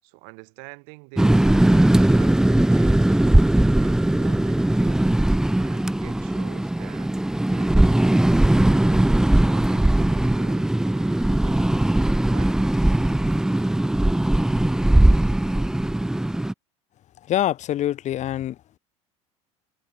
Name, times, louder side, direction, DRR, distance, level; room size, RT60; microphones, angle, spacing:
voice 1, 0.0-3.2 3.8-5.2 5.5-7.1 7.5-11.2 11.4-11.7 12.3-12.6, right 40 dB or more, 75° right, 6.9 m, -45 dB
sound 1, 1.2-16.5, right 1 dB, 5° right, 0.4 m, -19 dB
voice 2, 17.3-18.8, left 12 dB, 50° left, 1.3 m, -25 dB
hypercardioid pair, 85°, 16 cm